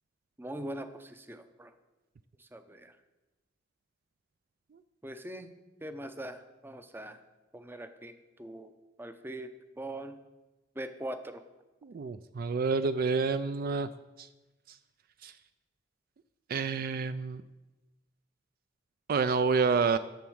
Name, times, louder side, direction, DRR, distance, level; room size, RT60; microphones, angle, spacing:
voice 1, 0.4-1.7 2.4-3.0 5.0-5.5 5.8-7.2 7.5-8.7 9.0-10.2 10.8-11.4, right 1 dB, 10° right, 9 dB, 0.6 m, -42 dB
voice 2, 11.8-13.9 14.2-14.3 15.2-15.3 16.5-17.4 19.1-20.0, right 5 dB, 50° right, 12 dB, 0.4 m, -28 dB
10.5 x 7.2 x 6.3 m, 1.1 s
head